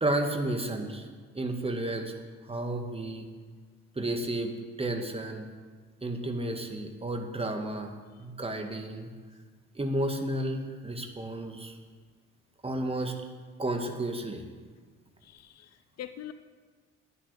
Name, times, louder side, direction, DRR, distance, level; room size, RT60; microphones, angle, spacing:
voice 1, 0.0-1.1 1.4-2.1 2.5-3.3 4.0-5.5 6.0-7.9 8.2-9.1 9.8-11.8 12.6-13.1 13.6-14.4, right 1 dB, 15° right, 4 dB, 2.0 m, -32 dB
voice 2, 15.2-16.3, left 11 dB, 45° left, 12 dB, 0.7 m, -44 dB
10.5 x 9.4 x 8.1 m, 1.5 s
figure-of-eight pair, 55°, 35 cm